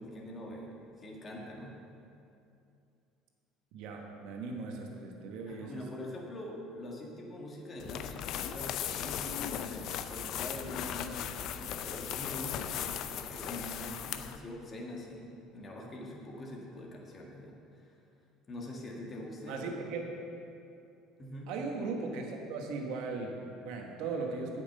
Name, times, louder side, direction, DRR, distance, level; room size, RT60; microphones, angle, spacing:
voice 1, 0.0-1.7 5.5-17.9 18.5-19.7 21.2-21.5, left 1 dB, 35° left, -2 dB, 1.8 m, -44 dB
voice 2, 3.7-5.7 19.5-20.1 21.5-24.6, right 4 dB, 70° right, 2 dB, 1.4 m, -38 dB
sound 1, 7.8-14.4, left 10 dB, 60° left, 0.5 m, -37 dB
8.7 x 6.1 x 6.7 m, 2.6 s
supercardioid pair, 85°, 0 cm